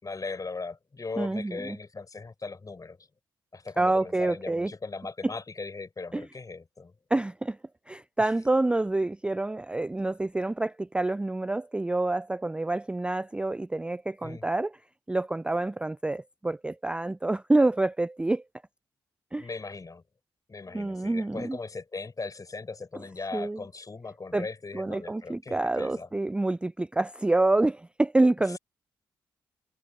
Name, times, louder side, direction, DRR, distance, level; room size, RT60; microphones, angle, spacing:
voice 1, 0.0-3.0 3.5-6.9 14.2-14.4 19.4-20.0 20.5-26.1, left 3 dB, 35° left, 4.9 m, -38 dB
voice 2, 1.2-1.8 3.8-4.7 6.1-6.3 7.1-7.6 7.9-14.8 15.1-18.4 19.3-19.5 20.7-21.6 23.3-23.6 24.3-24.5 24.7-28.6, right 2 dB, 10° right, 0.3 m, -27 dB
hypercardioid pair, 45°, 10 cm